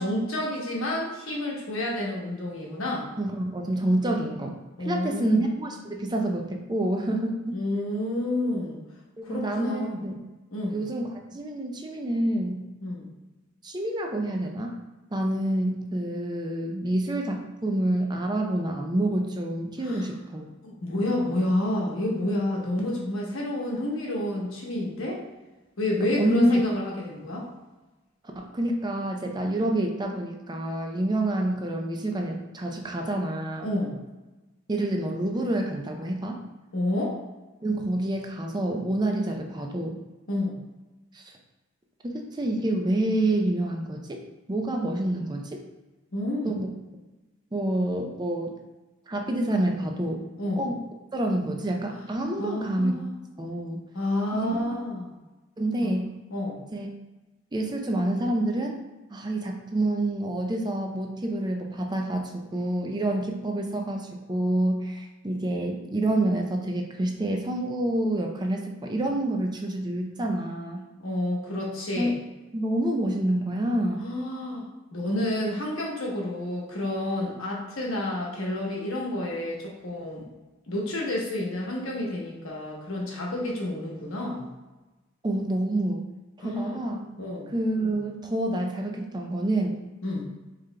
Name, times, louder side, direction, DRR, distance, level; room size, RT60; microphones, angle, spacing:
voice 1, 0.0-3.1 4.8-5.4 7.5-8.8 9.2-10.0 10.5-10.8 12.8-13.1 19.8-20.1 20.6-25.2 25.8-27.5 33.6-33.9 36.7-37.2 40.3-40.6 46.1-46.5 50.4-50.6 52.4-53.1 53.9-55.1 55.8-56.0 56.3-56.6 71.0-72.2 74.0-74.7 74.9-80.2 80.7-84.5 86.4-86.8 87.2-87.5 90.0-90.3, left 1 dB, 75° left, -2 dB, 1.0 m, -29 dB
voice 2, 3.2-7.6 9.2-10.2 10.6-12.7 13.6-14.8 15.1-20.5 26.2-26.6 28.4-33.7 34.7-36.4 37.6-40.0 41.1-41.2 42.0-44.2 44.5-45.6 46.4-46.7 47.5-48.5 49.1-50.3 50.6-50.8 51.1-53.0 53.4-53.8 54.3-54.8 55.6-56.1 56.7-56.9 57.5-58.8 59.1-70.8 71.9-72.2 72.5-74.0 85.2-86.0 86.4-87.0 87.5-89.8, right 1 dB, 20° right, 2 dB, 0.5 m, -27 dB
4.9 x 3.6 x 2.2 m, 1.1 s
head